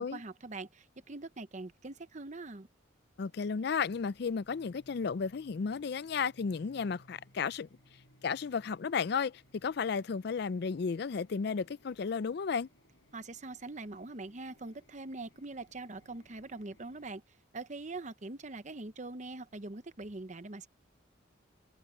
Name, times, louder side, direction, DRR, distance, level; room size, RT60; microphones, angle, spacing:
voice 1, 0.0-2.7 13.1-17.2 17.5-20.7, right 2 dB, 40° right, 0.9 m, -43 dB
voice 2, 3.2-7.7 8.2-12.7, left 5 dB, 55° left, 0.4 m, -33 dB
sound 1, 3.8-17.1, left 1 dB, 70° left, 6.0 m, -64 dB
head